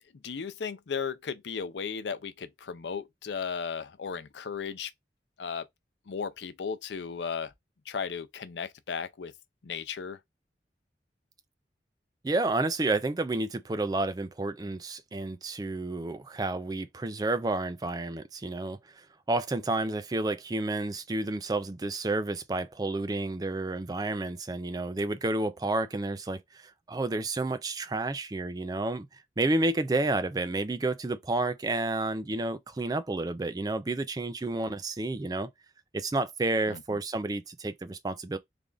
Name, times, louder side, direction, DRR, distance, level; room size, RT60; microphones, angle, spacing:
voice 1, 0.2-4.9 5.4-5.6 6.1-7.5 7.9-9.3 9.6-10.2 36.7-36.8, left 6 dB, 85° left, 0.5 m, -35 dB
voice 2, 12.2-26.6 26.9-29.1 29.4-35.5 35.9-38.4, right 2 dB, 20° right, 0.4 m, -30 dB
3.4 x 2.4 x 3.8 m
head